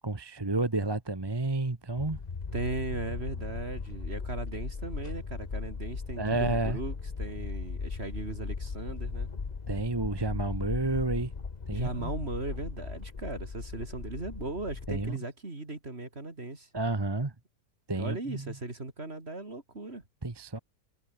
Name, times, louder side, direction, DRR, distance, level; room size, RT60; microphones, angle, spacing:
voice 1, 0.0-2.2 6.2-6.8 9.7-11.3 11.7-12.1 14.9-15.2 16.7-17.3 17.9-18.5 20.2-20.6, right 2 dB, 15° right, 1.0 m, -30 dB
sound 1, 2.0-15.1, left 5 dB, 30° left, 1.0 m, -37 dB
voice 2, 2.5-9.3 11.7-16.7 18.0-20.0, right 2 dB, 35° right, 3.9 m, -37 dB
omnidirectional pair, 1.8 m